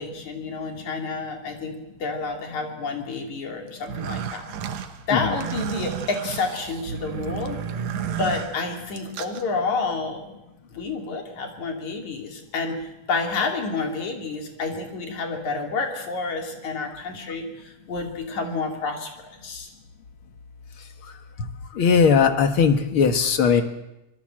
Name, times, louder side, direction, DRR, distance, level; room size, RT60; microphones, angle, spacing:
voice 1, 0.0-4.5 5.1-7.6 7.8-7.9 8.2-10.3 10.7-12.8 13.1-19.7, left 4 dB, 70° left, 3 dB, 4.2 m, -29 dB
sound 1, 3.8-9.4, right 8 dB, 65° right, 2.5 m, -32 dB
voice 2, 21.8-23.6, left 6 dB, 50° left, 7 dB, 2.1 m, -18 dB
25.5 x 21.0 x 7.6 m, 0.94 s
omnidirectional pair, 3.5 m